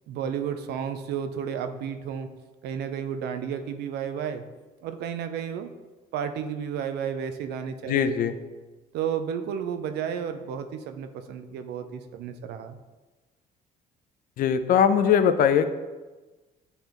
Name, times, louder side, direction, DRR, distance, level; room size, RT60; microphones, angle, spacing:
voice 1, 0.1-2.3 2.6-4.4 4.8-5.7 6.1-8.3 8.9-12.8, right 8 dB, 75° right, 8 dB, 0.6 m, -32 dB
voice 2, 7.9-8.3 14.4-15.7, left 8 dB, 55° left, 9 dB, 0.5 m, -20 dB
9.4 x 3.3 x 3.0 m, 1.2 s
cardioid pair, 110°, 17 cm